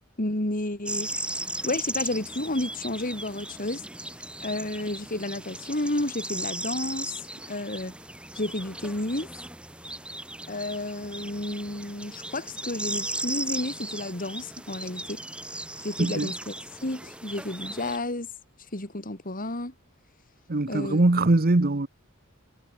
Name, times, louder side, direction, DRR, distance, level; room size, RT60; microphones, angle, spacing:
voice 1, 0.2-1.1 1.6-3.8 4.4-8.0 8.3-9.3 10.5-15.2 15.8-16.5 16.8-18.3 18.7-19.7 20.7-21.0, left 1 dB, 40° left, 3.6 m, -31 dB
sound 1, 0.9-18.0, right 1 dB, 5° right, 1.2 m, -37 dB
voice 2, 16.0-16.3 20.5-21.9, right 2 dB, 45° right, 1.0 m, -22 dB
head